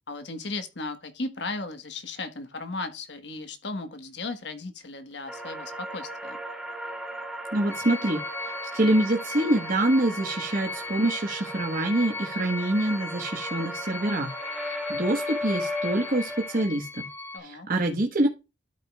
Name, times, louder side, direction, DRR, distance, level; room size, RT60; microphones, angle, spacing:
voice 1, 0.1-6.4 17.3-17.7, left 3 dB, 65° left, 1.5 m, -36 dB
sound 1, 5.3-16.6, equal, 5° right, 1.9 m, -36 dB
voice 2, 7.5-14.3 14.6-17.0 17.4-18.3, right 1 dB, 50° right, 1.4 m, -26 dB
sound 2, 7.7-17.4, left 3 dB, 10° left, 0.8 m, -38 dB
13.0 x 5.2 x 2.4 m
head